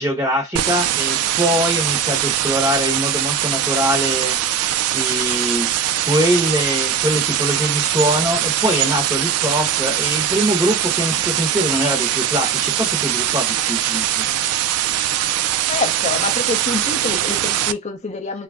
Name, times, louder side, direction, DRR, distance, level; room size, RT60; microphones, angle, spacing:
voice 1, 0.0-4.4 4.9-5.7 6.1-14.2, equal, 15° right, 0.9 m, -22 dB
sound 1, 0.6-17.7, right 12 dB, 85° right, 0.3 m, -21 dB
voice 2, 15.7-18.4, left 4 dB, 30° left, 0.6 m, -26 dB
2.4 x 2.0 x 3.3 m
head